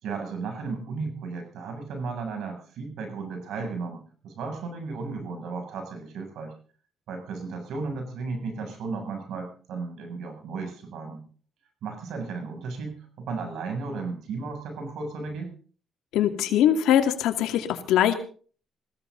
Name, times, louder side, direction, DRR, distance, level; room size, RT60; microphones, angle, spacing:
voice 1, 0.0-6.5 7.1-11.2 11.8-15.5, right 4 dB, 80° right, 4 dB, 7.4 m, -34 dB
voice 2, 16.1-18.1, left 10 dB, 90° left, 7 dB, 2.4 m, -22 dB
21.0 x 16.0 x 4.0 m, 0.42 s
cardioid pair, 90°, 0 cm